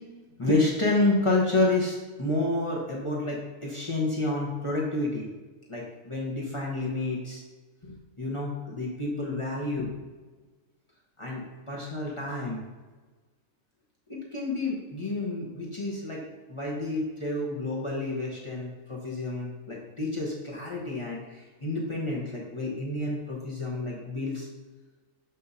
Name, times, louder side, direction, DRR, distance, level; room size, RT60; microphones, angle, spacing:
voice 1, 0.4-5.3 5.7-7.4 7.8-9.9 11.2-12.6 14.1-16.2 16.5-24.5, left 2 dB, 25° left, -4 dB, 1.0 m, -29 dB
6.4 x 5.7 x 2.7 m, 1.3 s
omnidirectional pair, 1.4 m